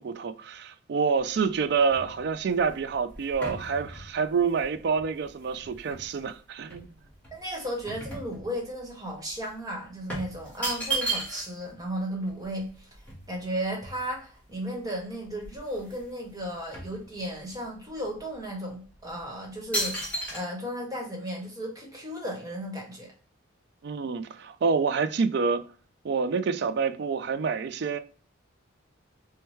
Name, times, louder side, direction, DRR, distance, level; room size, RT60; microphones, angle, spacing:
voice 1, 0.0-6.9 23.8-25.6 26.0-28.0, right 5 dB, 55° right, 0.3 m, -27 dB
sound 1, 1.1-6.3 6.7-8.9 9.2-9.4 10.1-11.7 12.0-12.1 12.3-14.4 15.0-15.1 15.3-16.1 16.4-17.6 18.2-18.3 18.9-19.2 19.7-20.4, right 2 dB, 10° left, 1.2 m, -35 dB
voice 2, 7.3-12.9 13.3-23.1, equal, 20° right, 1.1 m, -35 dB
4.5 x 2.2 x 3.1 m
head